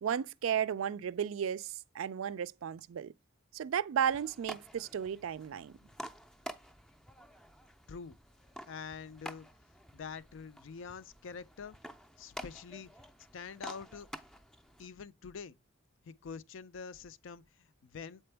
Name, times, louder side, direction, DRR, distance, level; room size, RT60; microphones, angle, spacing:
voice 1, 0.0-3.1 3.5-5.8, right 8 dB, 75° right, 0.3 m, -34 dB
sound 1, 4.0-14.9, equal, 5° left, 0.4 m, -50 dB
voice 2, 8.7-9.5 9.9-11.8 12.2-12.9 13.3-14.1 14.8-15.5 16.0-18.2, left 5 dB, 65° left, 0.4 m, -45 dB
7.7 x 4.4 x 3.3 m
head